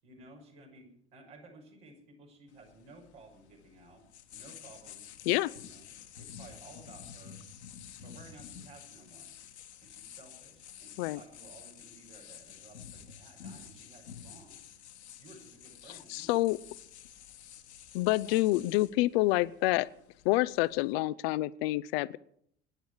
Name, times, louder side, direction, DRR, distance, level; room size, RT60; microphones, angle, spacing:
voice 1, 0.0-4.0 4.3-5.0 5.6-5.8 6.2-7.4 8.0-9.3 9.8-14.6 15.2-16.5 18.1-18.6, right 2 dB, 75° right, -1 dB, 6.3 m, -55 dB
sound 1, 2.5-20.9, left 8 dB, 80° left, 1.7 m, -50 dB
voice 2, 16.1-16.6 17.9-19.9 20.2-22.2, left 18 dB, 65° left, 18 dB, 0.7 m, -27 dB
25.0 x 10.5 x 4.8 m, 0.68 s
hypercardioid pair, 65°, 33 cm